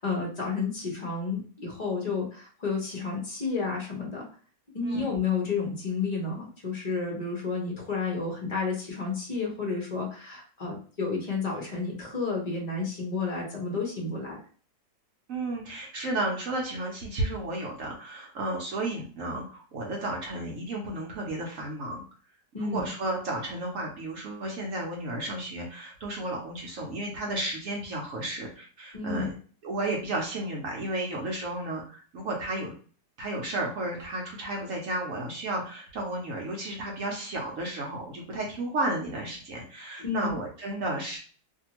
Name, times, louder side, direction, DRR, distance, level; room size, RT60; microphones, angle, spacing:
voice 1, 0.0-4.2 4.7-14.4 22.5-22.9 28.9-29.3 40.0-40.4, left 4 dB, 35° left, -2 dB, 0.7 m, -31 dB
voice 2, 4.8-5.1 15.3-22.0 22.6-29.3 29.6-32.7 33.2-41.2, right 2 dB, 60° right, -1 dB, 0.9 m, -33 dB
2.8 x 2.6 x 2.9 m, 0.41 s
omnidirectional pair, 1.9 m